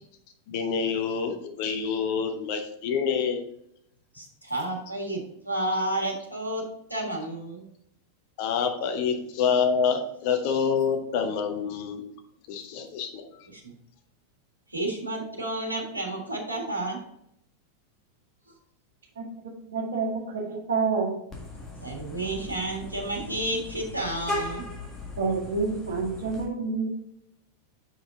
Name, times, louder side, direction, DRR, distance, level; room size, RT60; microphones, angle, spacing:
voice 1, 0.5-3.4 8.4-12.0 12.5-13.2, left 6 dB, 45° left, 5 dB, 0.9 m, -27 dB
voice 2, 4.1-6.6 6.9-7.7 13.5-13.7 14.7-17.0 21.8-24.6, right 1 dB, 85° right, 0 dB, 1.5 m, -31 dB
voice 3, 19.7-21.1 25.2-27.0, right 4 dB, 65° right, -1 dB, 1.8 m, -28 dB
Vehicle horn car horn honking, 21.3-26.4, left 2 dB, 20° left, 1.9 m, -38 dB
6.6 x 5.0 x 3.9 m, 0.75 s
figure-of-eight pair, 90°, 0 cm